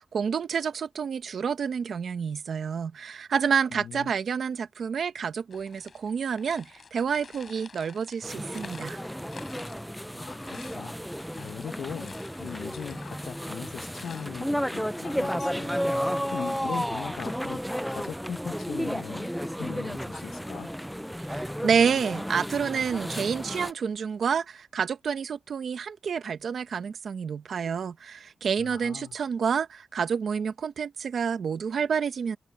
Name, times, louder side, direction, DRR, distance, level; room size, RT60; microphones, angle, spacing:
voice 1, 0.0-9.0 21.3-32.4, right 6 dB, 55° right, 1.2 m, -29 dB
voice 2, 3.7-4.1 10.1-10.9 11.4-15.7 16.0-20.7 28.6-29.1, left 8 dB, 85° left, 1.0 m, -40 dB
sound 1, 5.5-14.3, left 5 dB, 40° left, 5.4 m, -50 dB
sound 2, 8.2-23.7, equal, ahead, 0.4 m, -33 dB
wide cardioid pair, 165°, 0 cm